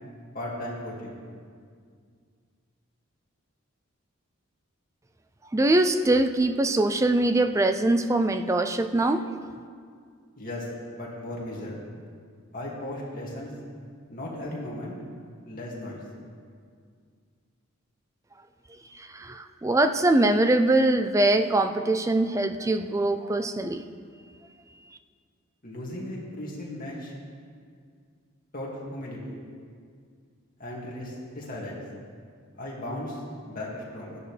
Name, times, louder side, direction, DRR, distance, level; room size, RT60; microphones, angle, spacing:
voice 1, 0.3-1.1 10.4-10.7 10.9-11.8 12.5-13.5 14.1-14.9 15.4-16.0 25.6-27.1 28.5-29.4 30.6-31.8 32.6-34.2, left 1 dB, 40° left, -4 dB, 2.2 m, -36 dB
voice 2, 5.5-9.2 19.0-23.8, right 2 dB, 15° right, 8 dB, 0.4 m, -23 dB
14.0 x 10.5 x 3.3 m, 2.1 s
head